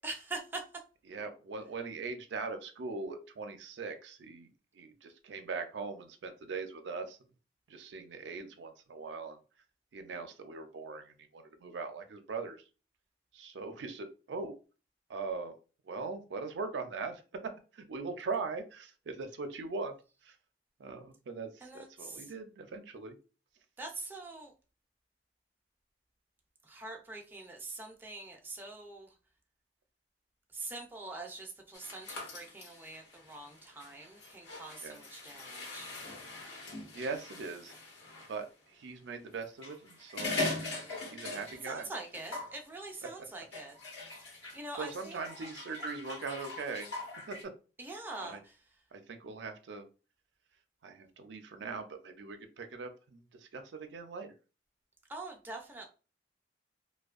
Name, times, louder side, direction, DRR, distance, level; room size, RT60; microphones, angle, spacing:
voice 1, 0.0-0.6 21.6-22.3 23.8-24.5 26.6-29.1 30.5-35.9 41.6-43.8 44.5-45.2 47.8-48.5 55.1-55.8, right 2 dB, 10° right, 1 dB, 0.4 m, -44 dB
voice 2, 1.1-4.5 4.7-7.2 7.7-9.4 9.9-12.6 13.3-14.6 15.1-15.6 15.8-17.2 17.7-20.0 20.2-20.4 20.8-23.2 34.8-35.0 36.9-37.8 38.3-40.7 41.1-41.9 43.0-43.1 44.8-46.9 47.3-47.5 48.2-48.4 48.9-49.9 50.8-54.3, right 4 dB, 80° right, 7 dB, 0.4 m, -41 dB
sound 1, 31.7-38.3 39.4-41.8 42.0-42.6 43.5-47.4, left 2 dB, 85° left, 1.0 m, -41 dB
2.6 x 2.1 x 2.4 m, 0.33 s
head